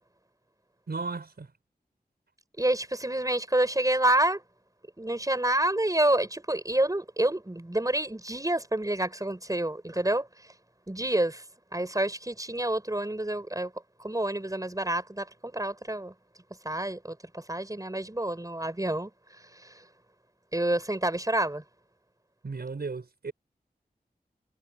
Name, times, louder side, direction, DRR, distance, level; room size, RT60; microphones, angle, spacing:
voice 1, 0.9-1.5 22.4-23.3, right 4 dB, 80° right, 5.1 m, -35 dB
voice 2, 2.6-4.4 5.0-10.3 10.9-11.4 11.7-13.7 14.0-16.1 16.6-19.1 19.5-19.8 20.5-21.6, right 1 dB, 20° right, 6.0 m, -28 dB
wide cardioid pair, 55°, 16 cm